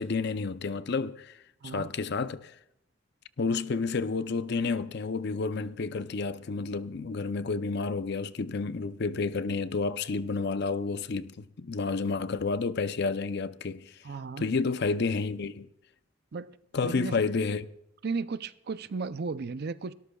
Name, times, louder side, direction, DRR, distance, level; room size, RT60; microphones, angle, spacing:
voice 1, 0.0-1.4 1.6-2.5 3.4-14.0 14.4-15.7 16.7-17.6, left 4 dB, 60° left, 0.6 m, -30 dB
voice 2, 1.6-1.9 14.0-14.5 16.3-16.6 16.8-17.2 18.0-19.9, right 4 dB, 55° right, 0.5 m, -35 dB
29.5 x 13.5 x 2.3 m
head